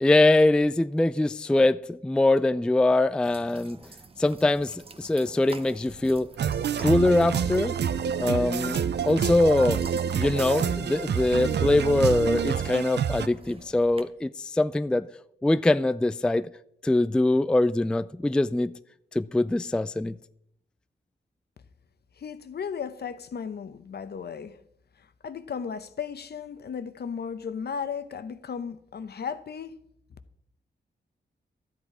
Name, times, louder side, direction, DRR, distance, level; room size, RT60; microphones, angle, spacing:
voice 1, 0.0-3.8 4.2-6.3 6.8-7.8 8.1-9.8 10.1-15.1 15.4-16.5 16.8-18.7 19.1-20.2, left 2 dB, 5° left, 0.3 m, -23 dB
sound 1, 3.2-14.0, right 3 dB, 30° right, 0.9 m, -48 dB
sound 2, 6.4-13.3, right 8 dB, 70° right, 0.5 m, -27 dB
voice 2, 22.2-24.6 25.2-29.8, left 6 dB, 65° left, 0.8 m, -35 dB
12.5 x 8.3 x 4.9 m
wide cardioid pair, 90°, 18 cm